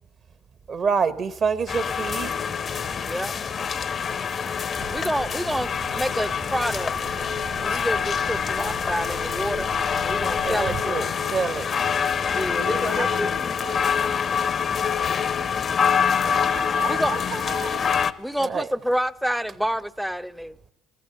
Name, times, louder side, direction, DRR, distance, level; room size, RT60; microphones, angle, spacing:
voice 1, 0.7-2.3 10.4-11.8 14.8-14.9 15.4-15.5 18.4-18.7, right 5 dB, 50° right, 0.8 m, -27 dB
sound 1, 1.7-18.1, left 7 dB, 45° left, 0.6 m, -25 dB
sound 2, 4.7-10.8, right 8 dB, 75° right, 1.9 m, -40 dB
voice 2, 4.9-6.9 7.6-9.7 10.0-11.1 12.3-13.5 16.9-17.1 18.2-20.6, equal, ahead, 0.5 m, -28 dB
Acoustic guitar / Strum, 10.9-14.4, left 6 dB, 90° left, 0.8 m, -49 dB
voice 3, 12.4-14.2 16.1-17.8, right 5 dB, 90° right, 3.0 m, -37 dB
14.5 x 11.5 x 6.8 m
hypercardioid pair, 55°, 0 cm